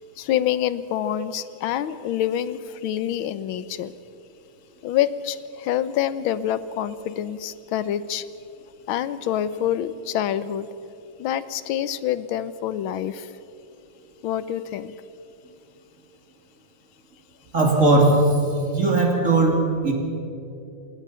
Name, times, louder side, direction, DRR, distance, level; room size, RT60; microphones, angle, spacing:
voice 1, 0.2-3.9 4.8-8.2 8.9-10.7 11.2-13.3 14.2-14.9, left 11 dB, 80° left, 15 dB, 1.6 m, -26 dB
voice 2, 17.5-18.3 18.7-19.9, right 2 dB, 40° right, 0 dB, 3.2 m, -18 dB
27.0 x 18.5 x 5.7 m, 2.7 s
omnidirectional pair, 2.3 m